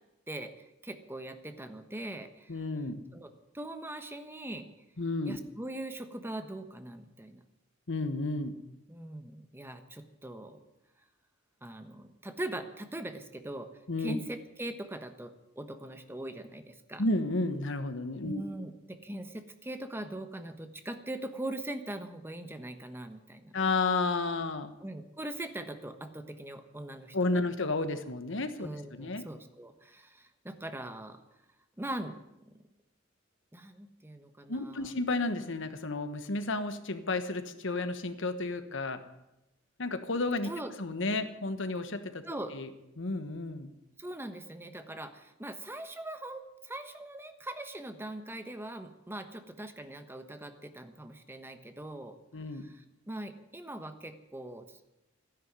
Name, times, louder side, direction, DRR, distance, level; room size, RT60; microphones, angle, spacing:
voice 1, 0.3-2.5 3.1-4.7 5.2-7.4 8.9-10.6 11.6-13.7 14.0-17.0 18.2-23.5 24.8-27.4 28.6-31.2 31.8-32.5 33.5-34.9 40.4-40.7 42.2-42.5 44.0-52.2 52.5-54.9, right 1 dB, 10° right, 8 dB, 1.2 m, -41 dB
voice 2, 2.5-3.0 5.0-5.4 7.9-8.6 13.9-14.2 17.0-18.4 23.5-24.7 27.1-29.2 34.5-39.0 39.8-40.5 40.8-42.3 42.5-42.7 43.0-43.7 52.3-52.7, left 2 dB, 65° left, 9 dB, 1.3 m, -32 dB
12.0 x 11.0 x 9.5 m, 0.92 s
head